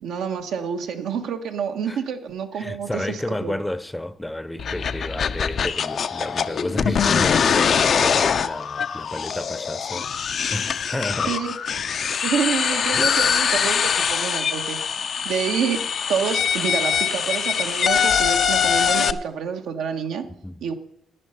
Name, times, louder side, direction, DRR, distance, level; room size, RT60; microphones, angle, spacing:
voice 1, 0.0-3.6 11.3-11.5 12.2-14.8 15.2-20.3 20.6-20.7, right 7 dB, 80° right, 1.3 m, -28 dB
voice 2, 2.5-10.1 10.5-11.3 12.9-13.3 20.3-20.6, left 1 dB, 10° left, 0.7 m, -31 dB
sound 1, 4.6-19.1, left 7 dB, 55° left, 0.6 m, -23 dB
11.0 x 9.7 x 5.6 m
cardioid pair, 90°, 0 cm